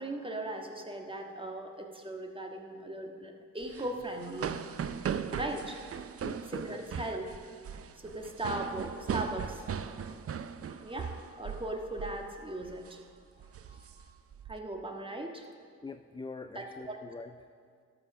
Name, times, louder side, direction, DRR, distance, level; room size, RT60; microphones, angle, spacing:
voice 1, 0.0-5.8 6.5-7.5 8.0-10.2 10.8-13.0 13.3-14.1 14.5-15.5 16.5-17.0, right 1 dB, 15° right, 3 dB, 1.5 m, -39 dB
sound 1, 3.6-11.7 12.0-12.2 12.6-12.9 13.4-14.5, right 7 dB, 40° right, 0.6 m, -38 dB
voice 2, 6.2-6.8 9.8-10.2 15.8-17.4, left 4 dB, 15° left, 8 dB, 0.4 m, -45 dB
13.0 x 5.9 x 6.2 m, 2.1 s
supercardioid pair, 50°, 35 cm